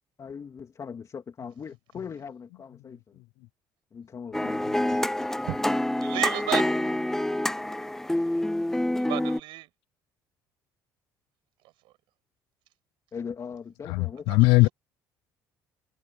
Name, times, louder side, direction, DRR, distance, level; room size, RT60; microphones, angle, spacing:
voice 1, 0.2-3.2 3.9-5.3 13.1-14.3, left 6 dB, 40° left, 3.0 m, -40 dB
sound 1, 4.3-9.4, left 1 dB, 5° left, 0.5 m, -27 dB
voice 2, 6.0-6.7 9.1-9.7 14.3-14.7, right 18 dB, 80° right, 6.3 m, -32 dB
voice 3, 13.9-14.7, left 23 dB, 85° left, 0.3 m, -20 dB
supercardioid pair, 85°, 8 cm